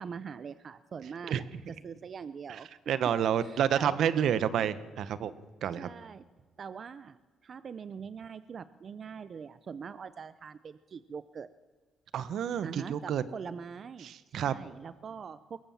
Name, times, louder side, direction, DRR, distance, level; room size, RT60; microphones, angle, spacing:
voice 1, 0.0-1.3 1.7-2.7 3.4-4.0 5.7-6.2 6.6-11.5 12.6-15.6, right 6 dB, 50° right, 14 dB, 0.6 m, -43 dB
voice 2, 2.9-5.3 5.6-5.9 12.1-13.2 14.0-14.5, right 9 dB, 70° right, 15 dB, 0.9 m, -29 dB
21.5 x 17.0 x 7.3 m, 1.5 s
cardioid pair, 90°, 0 cm